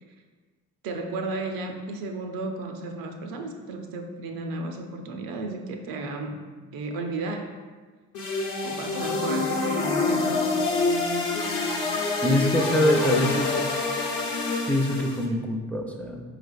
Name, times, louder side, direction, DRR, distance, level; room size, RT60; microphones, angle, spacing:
voice 1, 0.8-6.5 6.7-7.6 8.6-10.3, right 2 dB, 70° right, 4 dB, 0.6 m, -33 dB
sound 1, 8.1-15.3, left 3 dB, 55° left, 0.8 m, -26 dB
voice 2, 12.2-13.6 14.7-16.2, left 1 dB, 5° left, 3 dB, 0.4 m, -24 dB
4.6 x 3.3 x 2.3 m, 1.4 s
hypercardioid pair, 50°, 36 cm